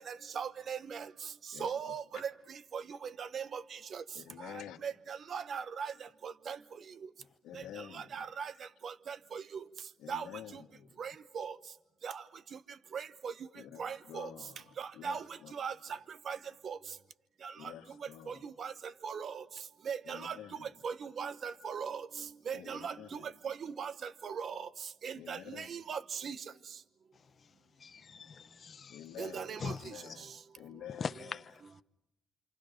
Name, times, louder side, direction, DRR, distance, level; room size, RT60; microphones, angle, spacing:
voice 1, 0.4-1.0 1.6-2.0 2.7-2.8 3.2-3.6 4.8-5.9 6.2-6.6 8.1-8.5 8.8-9.4 10.1-10.2 11.0-11.5 12.0-12.1 12.9-13.0 13.8-14.3 15.0-15.2 15.6-15.7 16.3-16.4 16.6-16.8 18.6-18.7 19.0-19.3 19.9-20.3 20.8-22.0 22.5-22.9 23.4-23.9 24.2-24.5 25.0-25.4 25.7-26.3 29.2-29.7, right 6 dB, 55° right, 1.0 m, -38 dB
voice 2, 4.1-4.8 7.4-8.3 10.0-11.0 13.5-15.5 17.6-18.4 20.0-20.7 22.5-23.3 25.1-25.7 28.9-30.3 30.6-31.1, left 10 dB, 90° left, 1.8 m, -49 dB
voice 3, 27.1-29.2 29.6-30.2 30.9-31.8, left 5 dB, 45° left, 0.9 m, -43 dB
28.5 x 27.5 x 5.2 m
cardioid pair, 90°, 0 cm